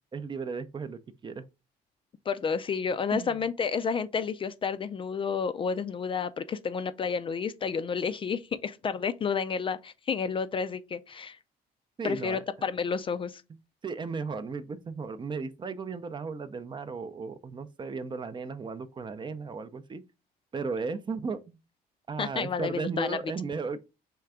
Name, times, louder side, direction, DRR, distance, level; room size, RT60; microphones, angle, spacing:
voice 1, 0.1-1.4 3.1-3.3 12.0-12.4 13.8-20.0 20.5-21.6 22.1-23.8, right 4 dB, 30° right, 0.5 m, -35 dB
voice 2, 2.3-11.4 12.0-13.4 22.2-23.2, left 6 dB, 30° left, 0.4 m, -30 dB
4.4 x 3.3 x 3.6 m
cardioid pair, 110°, 17 cm